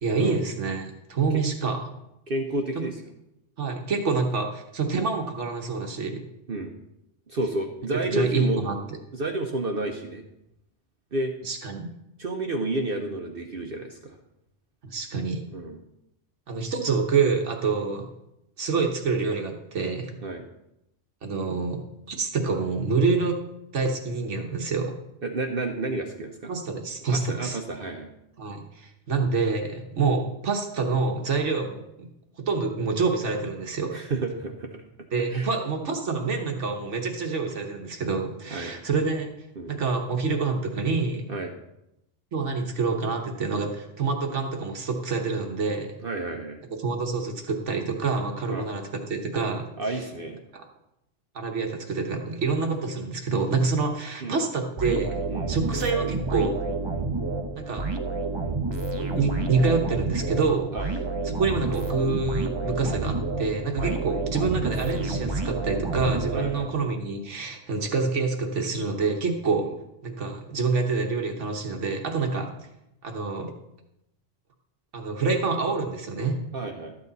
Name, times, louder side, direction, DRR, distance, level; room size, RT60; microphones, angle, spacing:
voice 1, 0.0-1.9 3.6-6.2 8.1-8.8 11.4-11.9 14.8-15.4 16.5-18.1 18.6-20.1 21.2-23.4 23.7-24.9 26.5-27.6 28.4-31.8 32.4-34.0 35.1-39.3 39.7-41.3 42.3-45.9 46.8-49.7 50.5-50.6 51.3-55.2 55.5-56.6 57.5-57.9 59.0-60.7 61.2-69.7 70.0-72.5 73.0-73.5 74.9-76.4, right 4 dB, 70° right, 3 dB, 1.5 m, -27 dB
voice 2, 2.3-3.0 6.5-6.7 7.3-8.7 9.1-10.3 11.1-11.3 12.2-14.2 15.5-15.8 20.2-20.4 25.2-26.5 27.1-28.1 33.9-34.8 35.3-35.5 38.5-38.7 39.6-39.7 41.3-41.5 46.0-46.6 48.5-48.7 49.8-50.4 54.2-54.4 55.3-55.5 60.7-60.9 63.8-64.0 66.3-66.7 72.3-72.5 76.5-76.9, right 2 dB, 50° right, 4 dB, 1.0 m, -30 dB
sound 1, 54.8-67.0, right 3 dB, 25° right, 0.7 m, -29 dB
12.5 x 8.4 x 4.0 m, 0.84 s
omnidirectional pair, 1.3 m